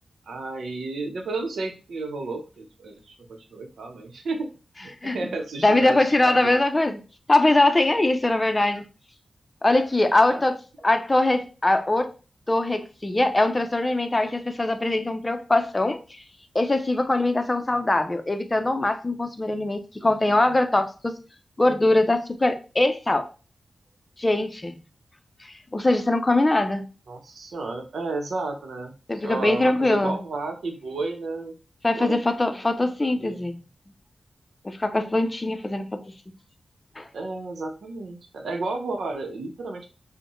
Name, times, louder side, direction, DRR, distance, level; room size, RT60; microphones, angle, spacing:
voice 1, 0.3-4.5 4.8-6.7 10.3-10.4 10.8-10.9 27.1-31.5 31.9-32.2 33.2-33.5 37.1-39.9, right 3 dB, 85° right, 0.7 m, -32 dB
voice 2, 5.6-7.0 7.3-8.8 9.6-10.6 10.8-12.1 12.5-16.0 16.5-21.1 21.6-23.3 24.2-24.8 25.7-26.8 29.1-30.2 31.8-33.6 34.6-36.0 37.0-37.1, left 2 dB, 25° left, 0.5 m, -22 dB
5.3 x 2.1 x 3.0 m
cardioid pair, 75°, 0 cm